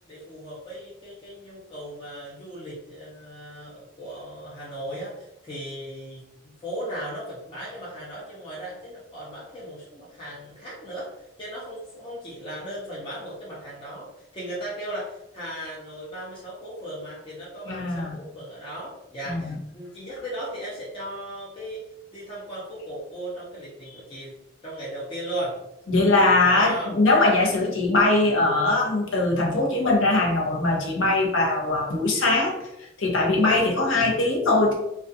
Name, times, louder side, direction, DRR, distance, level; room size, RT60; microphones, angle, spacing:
voice 1, 0.1-21.8 22.1-24.4 24.6-25.6 26.4-26.9, right 1 dB, 25° left, -8 dB, 0.6 m, -37 dB
voice 2, 17.7-18.2 19.3-19.5 25.9-32.6 33.0-34.7, left 2 dB, 85° left, -1 dB, 0.7 m, -21 dB
2.3 x 2.3 x 2.6 m, 0.85 s
head